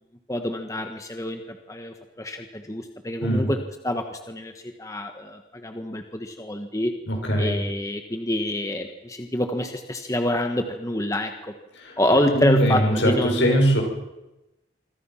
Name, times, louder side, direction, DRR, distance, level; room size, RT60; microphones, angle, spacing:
voice 1, 0.3-3.6 3.8-4.5 4.8-6.9 7.4-11.5 12.0-13.6, left 1 dB, 15° left, 5 dB, 1.5 m, -27 dB
voice 2, 7.1-7.5 11.8-12.0 12.3-13.8, equal, 75° left, 2 dB, 6.5 m, -21 dB
26.0 x 25.0 x 5.9 m, 0.98 s
head